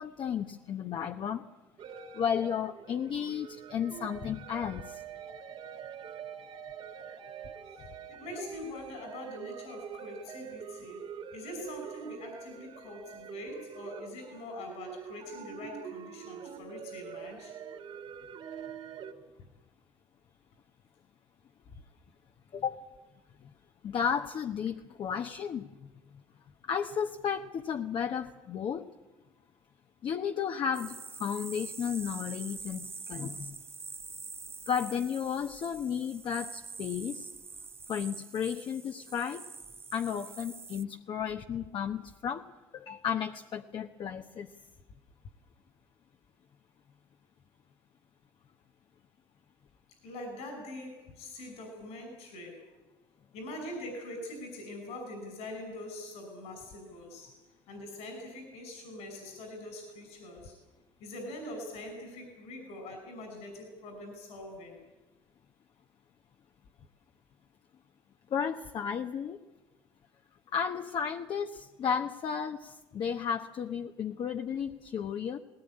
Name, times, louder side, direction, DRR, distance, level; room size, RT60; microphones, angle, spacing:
voice 1, 0.0-1.4 2.1-5.0 22.5-22.9 23.8-25.9 26.7-28.9 30.0-33.6 34.7-37.3 37.9-39.5 39.9-42.5 42.7-44.5 68.3-69.4 70.5-75.4, left 7 dB, 50° left, 4 dB, 1.1 m, -33 dB
sound 1, 1.8-19.1, right 8 dB, 55° right, 2.8 m, -45 dB
voice 2, 8.1-11.1 11.3-17.5 50.0-52.8 53.3-57.4 57.7-60.5 61.0-64.8, left 1 dB, 75° left, 4 dB, 5.7 m, -43 dB
sound 2, 30.7-40.8, right 4 dB, 20° right, 0.8 m, -45 dB
19.0 x 18.5 x 9.9 m, 1.1 s
supercardioid pair, 85°, 11 cm